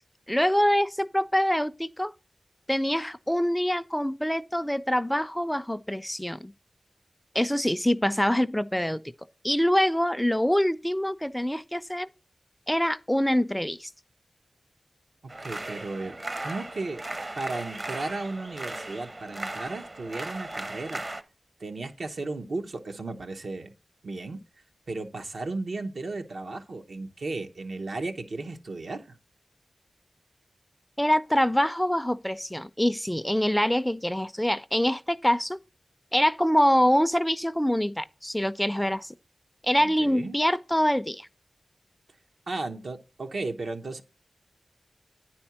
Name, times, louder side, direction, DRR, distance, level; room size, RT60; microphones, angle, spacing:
voice 1, 0.3-2.1 2.7-6.5 7.3-9.0 9.4-12.1 12.7-13.9 31.0-35.6 36.1-39.1 39.6-41.3, equal, 5° left, 0.4 m, -25 dB
sound 1, 15.3-21.2, right 2 dB, 40° right, 0.8 m, -37 dB
voice 2, 15.4-17.0 17.3-21.0 21.6-23.7 24.0-24.4 24.9-29.2 39.8-40.4 42.5-44.0, right 3 dB, 80° right, 0.9 m, -35 dB
9.4 x 4.3 x 5.8 m
cardioid pair, 50°, 0 cm